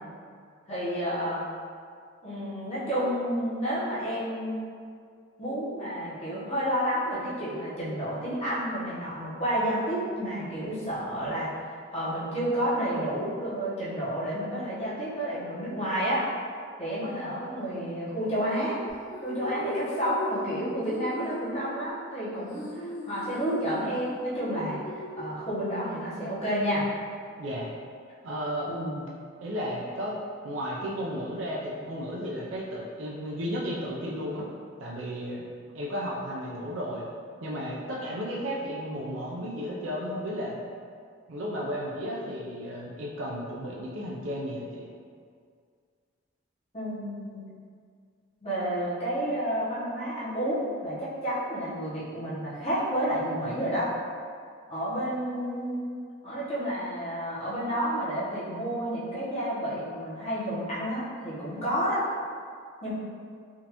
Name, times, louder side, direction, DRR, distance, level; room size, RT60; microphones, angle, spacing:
voice 1, 0.7-1.4 2.2-4.6 5.4-11.5 11.9-16.2 16.8-18.8 19.2-24.8 25.2-26.9 28.7-29.0 46.7-47.5 48.4-53.9 54.7-55.9 56.2-62.0 62.8-62.9, equal, 30° left, -10 dB, 0.9 m, -30 dB
sound 1, 18.9-25.9, equal, 70° left, 0.8 m, -39 dB
voice 2, 27.4-27.7 28.2-28.7 29.4-30.2 30.4-34.5 34.8-35.5 35.7-37.1 37.4-40.6 41.3-44.9, equal, 75° right, -3 dB, 0.5 m, -33 dB
3.6 x 2.5 x 2.9 m, 2.1 s
head